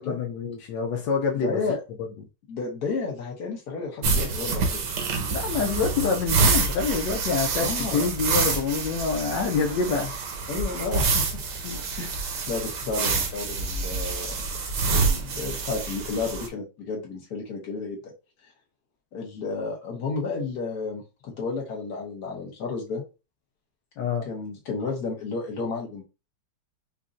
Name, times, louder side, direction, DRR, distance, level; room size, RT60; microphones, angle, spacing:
voice 1, 0.0-1.6 5.3-10.1 11.6-11.8 24.0-24.3, left 5 dB, 85° left, 1.3 m, -26 dB
voice 2, 1.3-1.8 2.5-4.8 7.6-8.1 9.6-10.0 10.5-11.4 12.0-12.1 12.5-14.5 14.9-18.1 19.1-23.0 24.3-26.0, left 4 dB, 60° left, 1.6 m, -32 dB
sound 1, 4.0-16.5, right 4 dB, 75° right, 1.4 m, -27 dB
5.3 x 2.5 x 2.5 m
omnidirectional pair, 1.9 m